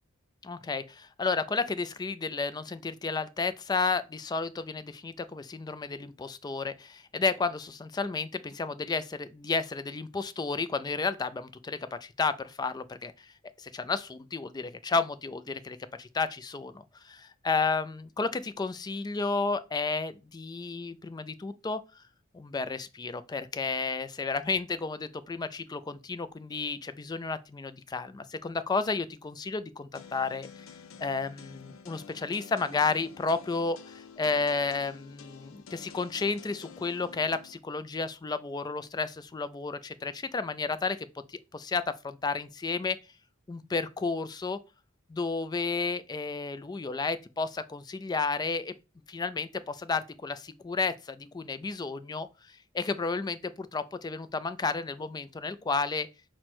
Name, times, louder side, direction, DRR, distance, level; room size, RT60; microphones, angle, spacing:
voice 1, 0.4-13.1 13.6-21.8 22.3-30.5 31.0-41.0 41.3-43.0 43.5-44.6 45.1-48.7 49.1-52.3 52.7-56.1, left 4 dB, 20° left, 0.3 m, -32 dB
sound 1, 29.9-37.6, left 6 dB, 85° left, 0.5 m, -50 dB
5.9 x 2.1 x 4.2 m
head